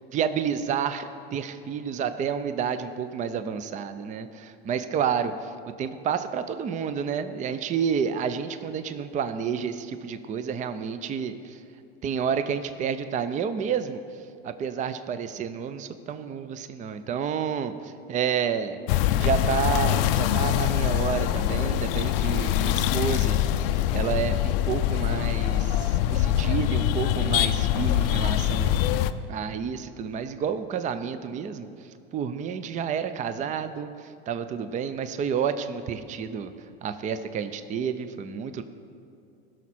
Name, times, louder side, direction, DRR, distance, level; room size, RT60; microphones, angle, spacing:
voice 1, 0.1-5.3 5.8-11.6 12.0-14.0 14.4-18.8 19.2-23.6 23.9-28.8 29.3-31.7 32.1-36.5 36.8-38.6, right 7 dB, 25° right, 11 dB, 0.5 m, -30 dB
sound 1, 18.9-29.1, left 12 dB, 60° left, 0.5 m, -24 dB
16.5 x 6.2 x 4.2 m, 2.6 s
hypercardioid pair, 100°, 31 cm